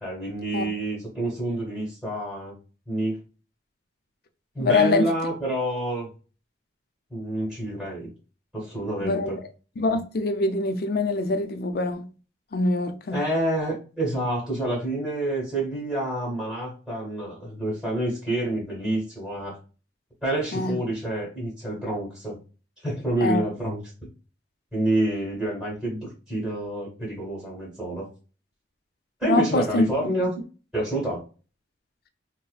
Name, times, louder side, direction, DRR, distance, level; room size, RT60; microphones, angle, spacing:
voice 1, 0.0-2.5 2.9-3.2 4.5-6.1 7.1-8.1 8.5-9.4 13.1-19.6 20.2-22.4 22.8-24.1 24.7-28.1 29.2-30.4 30.7-31.2, right 1 dB, ahead, 1.3 m, -28 dB
voice 2, 4.6-5.1 9.0-9.4 9.8-12.1 12.5-13.2 20.5-20.7 23.2-23.4 29.2-29.9, left 3 dB, 55° left, 0.4 m, -24 dB
3.9 x 2.1 x 2.3 m
head